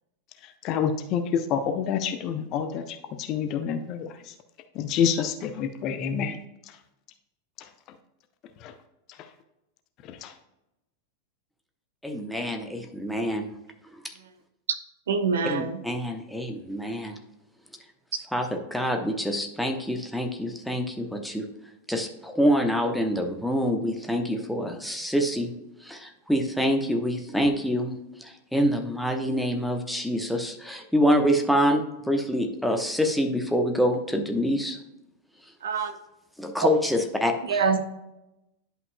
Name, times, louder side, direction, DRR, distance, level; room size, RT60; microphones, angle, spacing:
voice 1, 0.6-2.8 3.3-4.1 4.8-6.3, left 7 dB, 35° left, 8 dB, 0.6 m, -27 dB
voice 2, 12.0-13.5 13.9-14.0 15.4-17.2 18.3-21.5 21.9-25.5 25.8-27.9 28.2-34.8 36.4-37.7, equal, ahead, 4 dB, 1.0 m, -26 dB
voice 3, 15.1-15.6 35.6-35.9 37.5-37.8, right 5 dB, 65° right, 9 dB, 0.8 m, -24 dB
10.5 x 5.5 x 2.2 m, 0.92 s
figure-of-eight pair, 90°, 0 cm